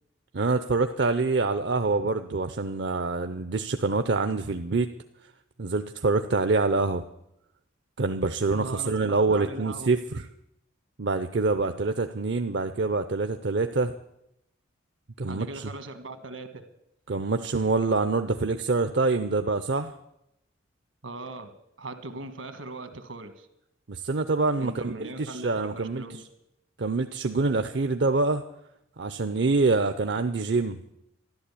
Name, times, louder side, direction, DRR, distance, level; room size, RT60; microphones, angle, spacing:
voice 1, 0.3-4.9 5.6-7.0 8.0-10.3 11.0-13.9 15.2-15.6 17.1-19.9 23.9-24.9 25.2-26.0 26.8-28.4 29.0-30.8, right 3 dB, 55° right, 8 dB, 0.6 m, -25 dB
voice 2, 8.4-9.9 15.2-16.6 21.0-23.5 24.6-26.2, right 2 dB, 75° right, 8 dB, 1.6 m, -39 dB
13.0 x 11.5 x 8.4 m, 0.83 s
head